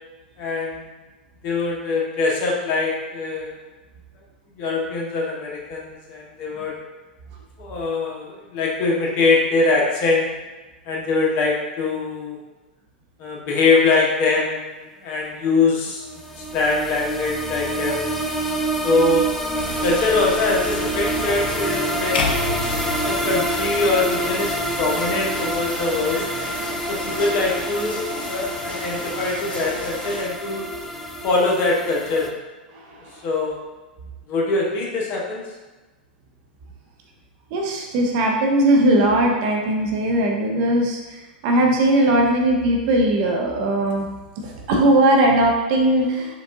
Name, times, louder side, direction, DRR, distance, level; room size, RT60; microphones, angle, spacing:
voice 1, 0.4-0.9 1.4-3.6 4.6-6.7 7.6-10.3 10.8-12.4 13.2-18.0 18.8-19.3 19.8-22.4 23.0-26.2 26.9-28.0 28.2-30.7 31.2-32.4 33.2-33.6 34.3-35.4, left 3 dB, 40° left, -3 dB, 0.9 m, -23 dB
sound 1, 16.1-32.3, right 1 dB, 5° left, 0.3 m, -27 dB
sound 2, 19.5-30.2, left 1 dB, 80° left, 0.9 m, -35 dB
sound 3, 22.1-24.4, left 4 dB, 65° left, 0.5 m, -28 dB
voice 2, 37.5-44.1 44.4-46.3, right 1 dB, 50° right, 1 dB, 0.7 m, -19 dB
4.5 x 2.4 x 2.6 m, 1.2 s
figure-of-eight pair, 95°, 5 cm